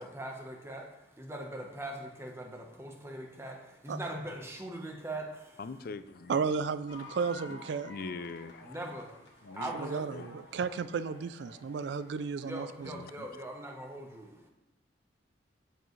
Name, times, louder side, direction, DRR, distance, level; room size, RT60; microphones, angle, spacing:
voice 1, 0.0-5.6 8.6-10.1 12.4-14.5, right 1 dB, 15° right, 1 dB, 1.0 m, -41 dB
voice 2, 5.6-6.4 7.5-8.7 9.4-9.7 10.1-10.3 12.8-13.3, left 4 dB, 55° left, 13 dB, 0.4 m, -43 dB
voice 3, 6.3-7.9 9.7-12.9, right 5 dB, 65° right, 14 dB, 0.3 m, -33 dB
sound 1, 6.9-13.3, left 1 dB, 80° left, 1.4 m, -52 dB
13.0 x 4.7 x 3.2 m, 0.91 s
head